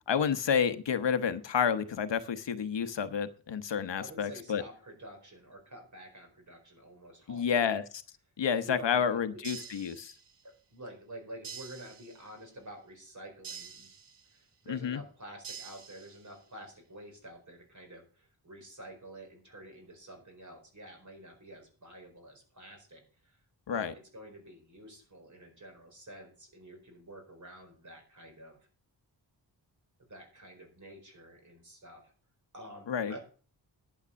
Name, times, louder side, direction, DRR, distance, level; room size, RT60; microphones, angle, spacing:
voice 1, 0.1-4.6 7.3-7.8 8.4-10.1 14.7-15.0 23.7-23.9 32.9-33.2, left 7 dB, 85° left, 10 dB, 1.1 m, -30 dB
voice 2, 3.9-7.8 8.6-9.7 10.4-13.9 14.3-23.4 23.7-28.6 30.1-32.1 32.5-33.2, right 1 dB, 45° right, 3 dB, 4.7 m, -49 dB
sound 1, 9.4-10.5 11.4-12.5 13.4-14.5 15.4-16.5, right 7 dB, 75° right, 1.4 m, -47 dB
11.0 x 8.2 x 6.3 m, 0.39 s
wide cardioid pair, 145°, 42 cm